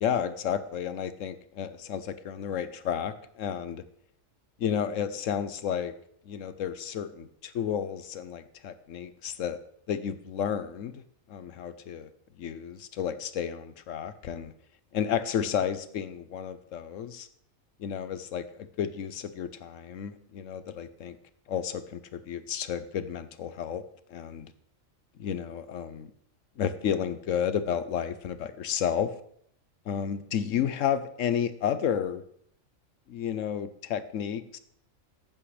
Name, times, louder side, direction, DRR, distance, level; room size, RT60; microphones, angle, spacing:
voice 1, 0.0-3.8 4.6-5.9 6.3-9.6 9.9-11.0 11.3-12.1 12.4-14.5 14.9-17.3 17.8-21.2 21.5-23.8 24.1-24.5 25.2-26.1 26.6-29.1 29.9-32.2 33.1-34.6, left 8 dB, 75° left, 13 dB, 1.1 m, -32 dB
14.5 x 11.0 x 3.3 m, 0.68 s
omnidirectional pair, 1.4 m